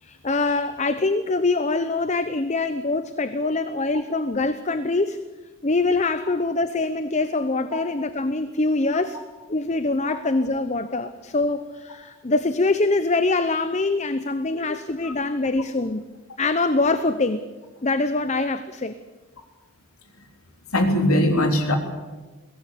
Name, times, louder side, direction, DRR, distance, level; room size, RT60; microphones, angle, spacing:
voice 1, 0.0-5.2 5.6-9.2 9.5-16.0 16.4-17.4 17.8-18.9, left 3 dB, 30° left, 11 dB, 0.7 m, -24 dB
voice 2, 20.7-21.8, left 1 dB, 80° left, 4 dB, 3.5 m, -20 dB
21.5 x 17.0 x 8.4 m, 1.3 s
head